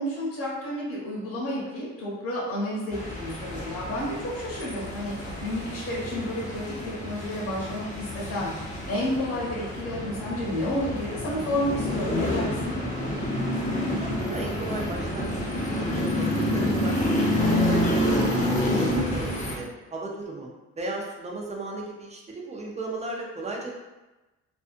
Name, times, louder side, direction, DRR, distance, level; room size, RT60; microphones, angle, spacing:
voice 1, 0.0-12.7 18.6-19.1, left 1 dB, 50° left, -6 dB, 0.9 m, -31 dB
sound 1, 2.9-19.6, left 1 dB, 25° left, 0.7 m, -28 dB
voice 2, 13.8-15.4 15.7-18.3 18.6-23.7, right 2 dB, 20° right, -1 dB, 0.6 m, -36 dB
2.5 x 2.4 x 2.5 m, 1.1 s
cardioid pair, 90°, 30 cm